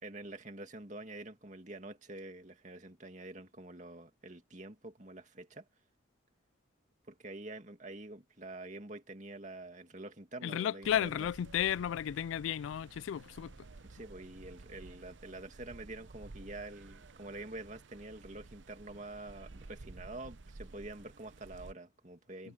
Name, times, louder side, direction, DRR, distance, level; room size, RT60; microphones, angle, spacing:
voice 1, 0.0-5.7 7.1-11.3 13.8-22.5, right 2 dB, 40° right, 2.4 m, -47 dB
voice 2, 10.4-13.5, left 9 dB, 85° left, 0.3 m, -33 dB
sound 1, 10.8-21.7, right 3 dB, 70° right, 0.8 m, -53 dB
head